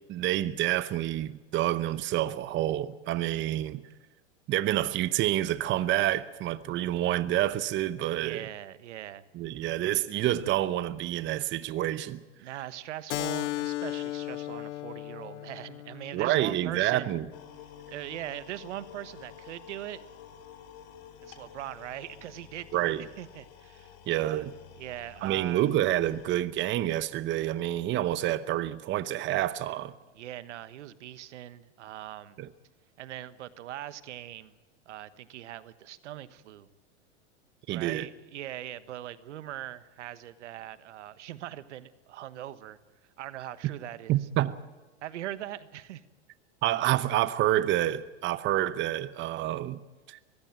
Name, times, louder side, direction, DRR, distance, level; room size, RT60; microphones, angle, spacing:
voice 1, 0.1-3.8 4.5-8.5 9.3-12.2 16.1-17.3 22.7-23.0 24.1-24.5 25.2-29.9 32.4-32.5 37.7-38.1 44.1-44.5 46.6-49.8 50.1-50.2, right 13 dB, 35° right, 0.9 m, -28 dB
voice 2, 8.1-9.3 12.4-17.2 17.9-20.0 21.2-24.5 24.8-25.7 30.1-32.4 33.0-34.5 34.9-36.7 37.7-42.8 43.2-44.3 45.0-46.0, right 13 dB, 80° right, 1.3 m, -41 dB
Keyboard (musical), 13.1-18.2, left 16 dB, 80° left, 0.6 m, -37 dB
sound 1, 17.3-26.4, left 9 dB, 55° left, 3.6 m, -51 dB
23.0 x 16.0 x 8.9 m
hypercardioid pair, 115°, 35 cm